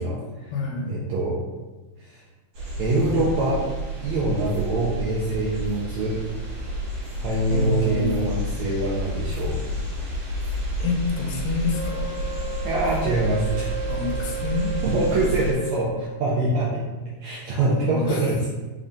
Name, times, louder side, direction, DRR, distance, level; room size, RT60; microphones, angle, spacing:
voice 1, 0.0-0.5 0.9-1.4 2.0-2.2 2.8-3.6 4.0-6.2 7.2-9.6 12.6-13.8 14.8-16.8 17.2-18.5, right 2 dB, 80° right, -6 dB, 1.6 m, -24 dB
voice 2, 0.5-0.9 7.5-8.5 10.8-12.1 13.9-14.8 17.7-18.2, left 4 dB, 85° left, 0 dB, 2.3 m, -27 dB
sound 1, 2.5-15.5, right 1 dB, 65° right, 2.6 m, -30 dB
Wind instrument woodwind instrument, 11.7-16.3, right 1 dB, 65° left, 1.6 m, -34 dB
5.4 x 3.5 x 2.6 m, 1.2 s
omnidirectional pair, 3.9 m